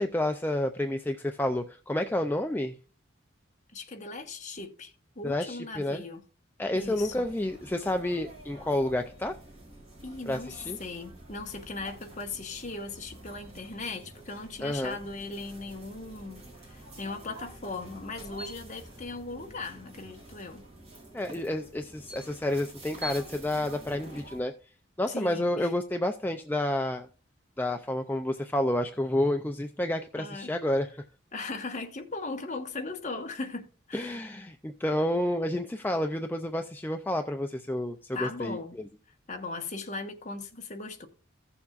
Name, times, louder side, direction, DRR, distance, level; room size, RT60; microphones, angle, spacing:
voice 1, 0.0-2.8 5.2-6.0 6.6-9.4 10.3-10.8 14.6-15.0 21.1-24.6 25.0-27.1 27.6-31.0 33.9-38.6, left 1 dB, 10° left, 0.4 m, -30 dB
voice 2, 3.7-6.2 6.7-7.3 10.0-20.6 25.1-25.7 30.2-30.5 31.3-34.2 38.1-38.8 39.3-41.1, left 3 dB, 40° left, 1.2 m, -38 dB
sound 1, 6.7-24.4, right 1 dB, 30° right, 3.8 m, -47 dB
15.5 x 7.1 x 2.4 m
head